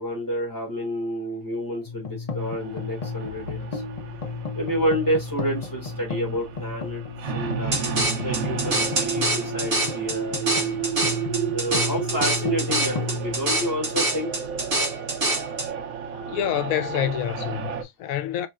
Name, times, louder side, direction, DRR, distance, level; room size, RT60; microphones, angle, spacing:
voice 1, 0.0-3.8 4.6-7.0 7.3-7.8 8.2-10.9 11.5-14.3, equal, 15° left, 2.0 m, -29 dB
sound 1, 1.8-14.3, left 4 dB, 40° left, 0.6 m, -34 dB
sound 2, 2.4-17.8, right 7 dB, 90° right, 1.1 m, -33 dB
sound 3, 7.7-15.7, right 2 dB, 45° right, 1.3 m, -25 dB
voice 2, 16.3-18.5, left 11 dB, 85° left, 1.0 m, -27 dB
4.3 x 3.1 x 2.4 m
omnidirectional pair, 1.4 m